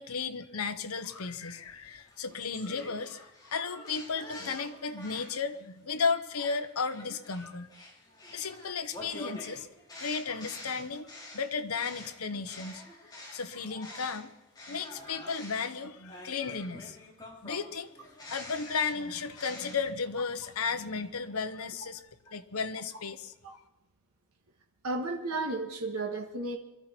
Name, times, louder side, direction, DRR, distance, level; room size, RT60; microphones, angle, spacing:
voice 1, 0.0-7.7 8.3-9.7 10.0-12.8 13.3-14.3 14.7-17.0 17.4-17.9 18.3-22.0 22.3-23.6, left 5 dB, 80° left, 9 dB, 1.0 m, -34 dB
sound 1, 1.3-5.5 5.9-14.2 14.5-19.7, left 1 dB, 20° left, 3.9 m, -47 dB
voice 2, 24.8-26.6, right 2 dB, 90° right, 2 dB, 1.6 m, -33 dB
24.0 x 13.5 x 4.5 m, 1.0 s
head